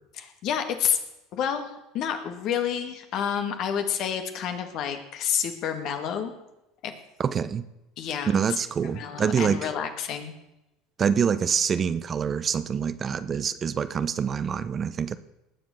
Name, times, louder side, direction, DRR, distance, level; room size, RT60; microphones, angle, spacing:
voice 1, 0.1-1.0 1.3-6.3 6.8-6.9 8.0-8.4 8.8-10.3, left 8 dB, 55° left, 6 dB, 2.1 m, -29 dB
voice 2, 7.2-7.7 8.3-9.6 11.0-15.2, right 7 dB, 35° right, 14 dB, 0.8 m, -26 dB
19.5 x 7.6 x 7.1 m, 0.93 s
hypercardioid pair, 80°, 0 cm